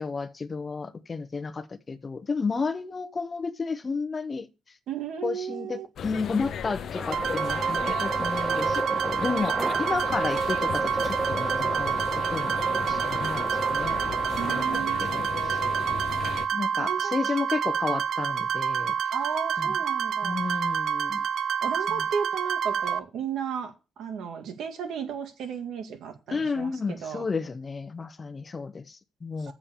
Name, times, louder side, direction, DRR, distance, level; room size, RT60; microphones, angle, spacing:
voice 1, 0.0-4.5 5.2-12.0 12.3-14.0 14.4-15.6 16.5-19.0 19.6-19.8 20.2-21.2 21.9-22.1 26.3-29.5, left 4 dB, 30° left, 0.9 m, -32 dB
voice 2, 4.9-5.9 14.4-15.1 16.8-17.2 19.1-20.5 21.6-27.2 29.5-29.6, right 7 dB, 90° right, 2.1 m, -34 dB
sound 1, 6.0-16.5, left 8 dB, 65° left, 0.7 m, -36 dB
sound 2, 7.0-14.7, right 2 dB, 10° right, 0.6 m, -34 dB
sound 3, 7.1-23.0, right 7 dB, 65° right, 0.5 m, -28 dB
7.5 x 7.0 x 7.1 m
cardioid pair, 140°, 0 cm